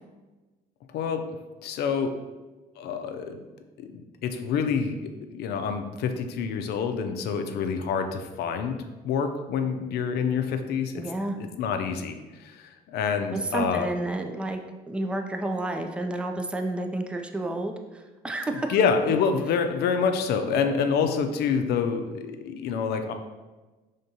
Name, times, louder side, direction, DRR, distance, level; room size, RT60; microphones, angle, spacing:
voice 1, 0.9-1.3 1.6-2.2 2.8-3.4 3.8-3.9 4.2-8.8 9.0-11.0 11.4-13.9 18.7-23.1, left 6 dB, 75° left, 7 dB, 0.5 m, -27 dB
voice 2, 11.0-11.4 13.5-17.7 18.2-18.8, right 2 dB, 5° right, 5 dB, 0.4 m, -30 dB
5.2 x 3.5 x 2.8 m, 1.2 s
cardioid pair, 110°, 17 cm